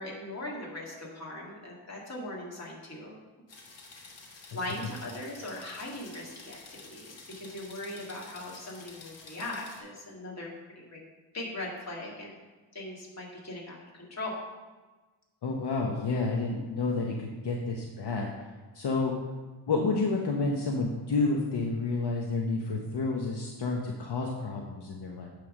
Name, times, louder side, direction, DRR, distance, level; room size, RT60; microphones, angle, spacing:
voice 1, 0.0-3.2 3.7-4.1 4.5-11.0 11.3-12.4 12.7-14.3, left 1 dB, 35° left, -3 dB, 2.0 m, -40 dB
sound 1, 3.5-9.8, left 3 dB, 80° left, 1.4 m, -50 dB
voice 2, 15.4-18.3 18.7-19.1 19.7-25.3, left 3 dB, 65° left, 0 dB, 1.0 m, -30 dB
9.2 x 3.4 x 6.4 m, 1.3 s
wide cardioid pair, 125°, 44 cm